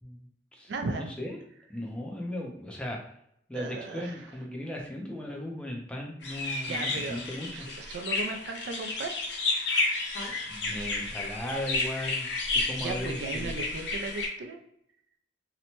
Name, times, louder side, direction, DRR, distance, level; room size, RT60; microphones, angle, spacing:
voice 1, 0.0-1.4 1.7-3.0 3.5-7.7 10.5-13.5, left 1 dB, 5° left, -1 dB, 0.4 m, -37 dB
voice 2, 0.7-1.1 3.5-4.3 6.7-7.2 7.5-9.1 12.3-12.5 12.8-14.6, right 3 dB, 75° right, 5 dB, 0.4 m, -36 dB
sound 1, 6.2-14.3, left 3 dB, 75° left, 0.5 m, -31 dB
2.8 x 2.1 x 2.9 m, 0.71 s
head